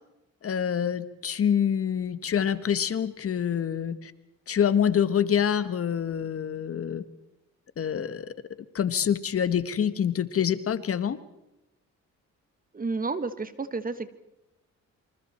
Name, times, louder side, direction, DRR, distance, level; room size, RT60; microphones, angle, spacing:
voice 1, 0.4-4.1 4.5-7.0 7.8-8.3 8.7-11.2, left 8 dB, 50° left, 13 dB, 1.4 m, -26 dB
voice 2, 12.7-14.1, right 3 dB, 30° right, 12 dB, 1.6 m, -31 dB
27.5 x 25.5 x 4.4 m, 0.91 s
cardioid pair, 90°, 30 cm